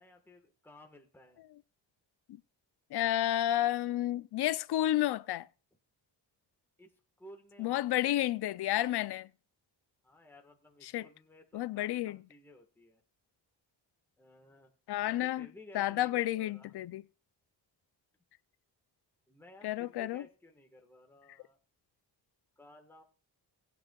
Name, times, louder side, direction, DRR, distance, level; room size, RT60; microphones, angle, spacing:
voice 1, 0.0-1.4 6.8-6.9 7.2-8.1 10.0-13.0 14.2-14.7 15.0-16.7 19.3-21.6 22.6-23.0, left 1 dB, 5° left, 1.4 m, -56 dB
voice 2, 2.9-5.5 7.6-9.3 10.8-11.1 11.5-12.2 14.9-15.5 15.7-17.0 19.6-20.2, left 13 dB, 60° left, 0.5 m, -31 dB
20.0 x 9.3 x 2.3 m
wide cardioid pair, 155°, 45 cm